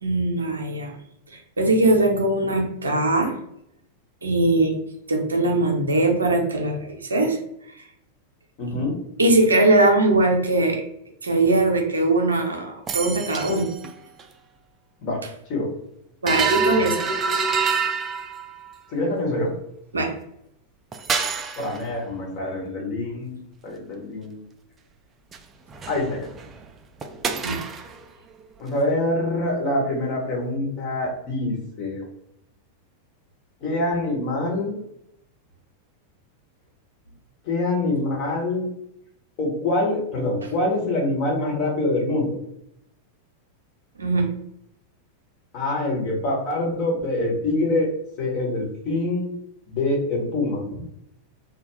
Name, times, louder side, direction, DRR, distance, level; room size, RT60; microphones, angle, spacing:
voice 1, 0.0-0.9 1.3-3.4 4.2-4.7 5.1-7.4 9.2-10.8 11.2-13.7 16.2-17.1 19.9-20.1 27.4-27.6 44.0-44.3, right 2 dB, 75° right, 2 dB, 0.6 m, -20 dB
voice 2, 8.6-9.0 15.0-15.2 15.5-15.7 18.9-19.5 21.6-23.4 23.6-24.4 25.9-26.3 28.6-32.1 33.6-34.8 37.4-38.7 39.4-42.4 45.5-47.9 48.2-49.3 49.7-50.8, left 2 dB, 40° left, -3 dB, 1.1 m, -25 dB
sound 1, 12.9-13.9 14.2-14.3 16.3-18.7 20.9-21.8 25.3-25.4 25.7-26.6 27.0-28.0, right 5 dB, 25° right, 0.3 m, -26 dB
2.4 x 2.2 x 3.1 m, 0.76 s
figure-of-eight pair, 90°, 0 cm